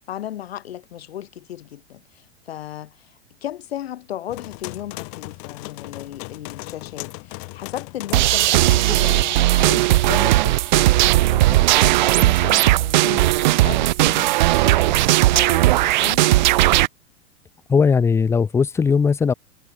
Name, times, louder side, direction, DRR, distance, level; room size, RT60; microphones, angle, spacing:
voice 1, 0.1-3.1 3.4-13.4 13.6-16.3, left 12 dB, 60° left, 1.3 m, -35 dB
sound 1, 4.3-9.5, left 38 dB, 40° left, 1.4 m, -37 dB
sound 2, 8.1-16.9, right 17 dB, 40° right, 0.4 m, -17 dB
voice 2, 17.7-19.3, left 5 dB, 10° left, 0.5 m, -18 dB
figure-of-eight pair, 95°, 35 cm